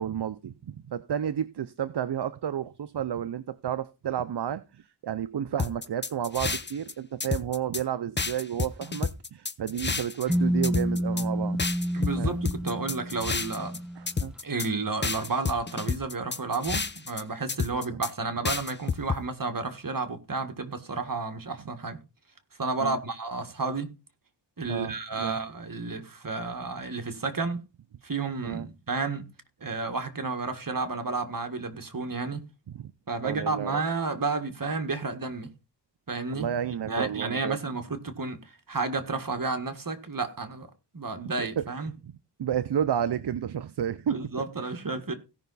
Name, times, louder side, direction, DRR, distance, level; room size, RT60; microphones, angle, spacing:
voice 1, 0.0-11.6 12.2-12.4 14.0-14.3 22.8-23.0 24.7-25.4 28.4-28.7 32.8-32.9 33.2-33.8 36.3-37.6 41.4-41.7 42.0-42.1 42.4-44.2, right 9 dB, 70° right, 0.6 m, -31 dB
sound 1, 5.6-6.9 7.2-7.8 8.2-10.4 10.6-11.2 11.6-13.8 14.1-14.7 15.0-17.2 17.5-18.1 18.4-19.2, left 4 dB, 25° left, 0.7 m, -30 dB
sound 2, 10.3-14.1, equal, ahead, 1.1 m, -29 dB
voice 2, 11.9-13.8 14.4-22.0 22.6-23.9 24.6-27.6 28.0-29.3 29.6-32.5 33.1-35.5 36.1-36.5 36.9-41.9 44.1-45.1, right 3 dB, 50° right, 1.7 m, -31 dB
17.0 x 5.7 x 4.0 m
wide cardioid pair, 75°, 41 cm